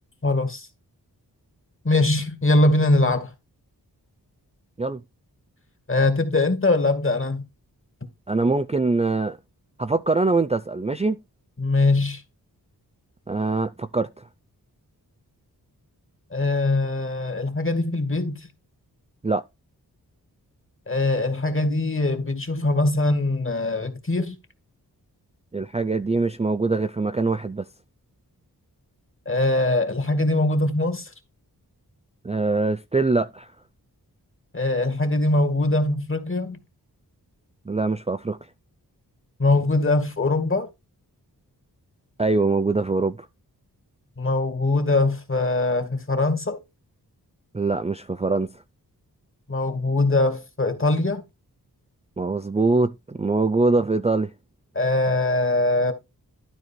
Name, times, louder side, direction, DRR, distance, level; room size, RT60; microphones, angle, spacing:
voice 1, 0.2-0.7 1.8-3.3 5.9-7.4 11.6-12.2 16.3-18.5 20.9-24.4 29.3-31.1 34.5-36.6 39.4-40.7 44.2-46.6 49.5-51.2 54.7-55.9, left 2 dB, 30° left, 2.2 m, -22 dB
voice 2, 8.3-9.4 9.8-11.2 13.3-14.1 19.2-19.4 25.5-27.7 32.2-33.5 37.7-38.4 42.2-43.3 47.5-48.5 52.2-54.3, right 3 dB, 15° right, 0.5 m, -23 dB
12.5 x 4.6 x 4.5 m
wide cardioid pair, 70°, 39 cm